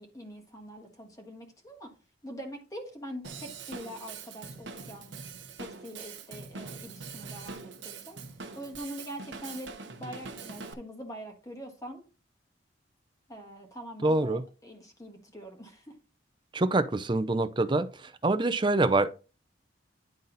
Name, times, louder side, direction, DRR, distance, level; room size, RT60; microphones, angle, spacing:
voice 1, 0.0-1.9 2.2-5.1 5.6-8.2 8.5-9.7 10.0-12.0 13.3-15.9, equal, 20° left, 1.5 m, -43 dB
Drum kit / Drum, 3.2-10.7, right 4 dB, 75° right, 0.9 m, -43 dB
voice 2, 14.0-14.4 16.5-17.9 18.2-19.1, right 2 dB, 25° right, 0.6 m, -25 dB
10.5 x 4.0 x 4.0 m
head